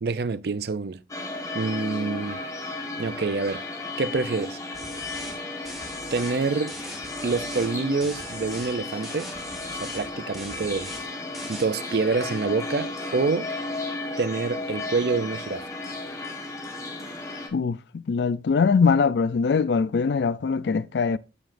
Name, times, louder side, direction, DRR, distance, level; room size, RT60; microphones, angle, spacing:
voice 1, 0.0-1.0 1.5-2.4 3.0-3.6 4.0-4.6 6.1-6.7 7.2-9.3 9.7-10.9 11.5-13.6 14.2-15.7, right 4 dB, 60° right, 0.4 m, -27 dB
sound 1, 1.1-17.5, left 2 dB, 15° left, 1.2 m, -34 dB
sound 2, 4.7-5.4 5.7-6.4 6.7-8.8 9.0-10.1 10.3-11.1 11.3-11.7, equal, ahead, 1.3 m, -41 dB
voice 2, 17.5-21.2, left 5 dB, 70° left, 0.4 m, -22 dB
13.0 x 5.0 x 2.6 m
head